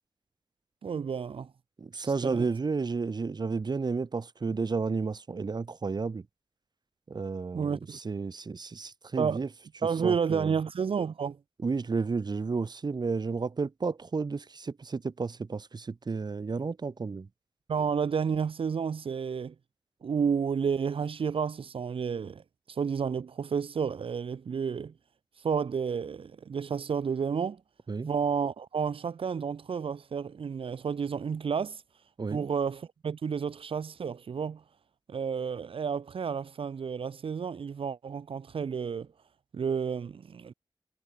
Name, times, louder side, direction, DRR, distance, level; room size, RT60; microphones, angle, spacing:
voice 1, 0.8-1.5 2.0-2.5 7.5-8.0 9.2-9.4 9.8-11.4 17.7-19.5 20.0-24.9 25.4-27.6 28.0-31.8 32.3-34.6 35.1-39.1 39.5-40.5, right 6 dB, 90° right, 0.7 m, -31 dB
voice 2, 1.8-6.2 7.1-9.5 10.0-10.5 11.6-17.3 27.9-28.1 32.2-32.5, right 4 dB, 50° right, 1.1 m, -32 dB
wide cardioid pair, 110°, 9 cm